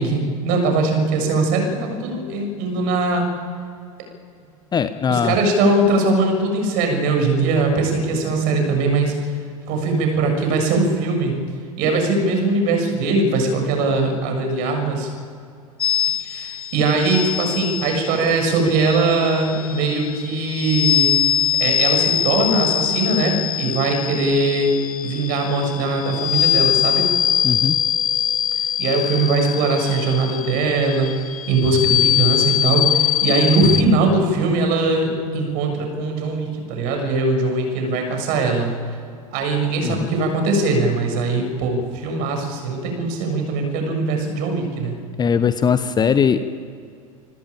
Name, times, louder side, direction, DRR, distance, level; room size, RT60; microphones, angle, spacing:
voice 1, 0.0-3.3 5.1-9.3 9.7-11.4 11.8-15.1 16.2-21.1 21.6-24.7 25.0-27.1 28.8-38.8 39.3-45.1, right 3 dB, 50° right, 4 dB, 6.9 m, -20 dB
voice 2, 4.7-5.4 27.4-27.8 39.8-40.1 45.2-46.4, left 7 dB, 20° left, 12 dB, 1.0 m, -19 dB
sound 1, 15.8-33.8, left 10 dB, 75° left, 0.4 m, -22 dB
27.5 x 14.5 x 8.8 m, 2.4 s
figure-of-eight pair, 80°, 19 cm